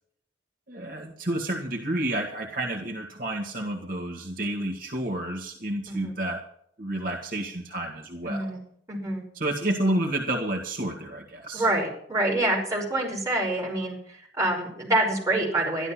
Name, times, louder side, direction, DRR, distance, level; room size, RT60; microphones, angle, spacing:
voice 1, 0.7-6.4 6.8-8.5 9.4-11.7, right 1 dB, 50° right, 1 dB, 1.9 m, -30 dB
voice 2, 8.2-8.6 8.9-9.2 11.5-15.9, right 1 dB, 20° right, -3 dB, 6.0 m, -26 dB
13.5 x 12.0 x 5.9 m, 0.65 s
head